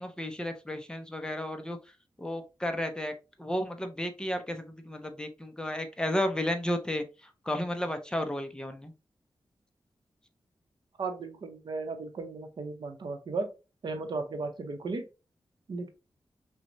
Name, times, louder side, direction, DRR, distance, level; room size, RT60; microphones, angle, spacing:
voice 1, 0.0-1.8 2.2-3.1 3.4-8.9, left 1 dB, 10° left, 6 dB, 0.5 m, -33 dB
voice 2, 11.0-13.5 13.8-15.1 15.7-15.9, right 3 dB, 60° right, 6 dB, 0.7 m, -35 dB
5.9 x 2.2 x 2.6 m, 0.30 s
wide cardioid pair, 155°, 9 cm